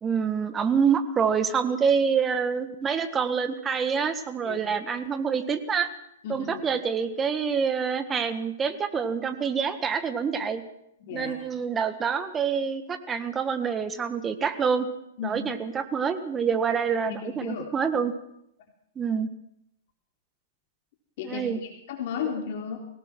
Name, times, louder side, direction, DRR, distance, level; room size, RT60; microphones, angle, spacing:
voice 1, 0.0-5.9 6.3-10.6 11.1-14.9 15.2-18.1 18.9-19.3 21.2-21.6, right 6 dB, 15° right, 10 dB, 1.7 m, -26 dB
voice 2, 6.2-6.7 11.0-11.4 15.2-15.4 17.0-17.7 21.2-22.8, left 7 dB, 55° left, 1 dB, 3.6 m, -34 dB
24.5 x 17.5 x 6.2 m, 0.77 s
hypercardioid pair, 135°, 0 cm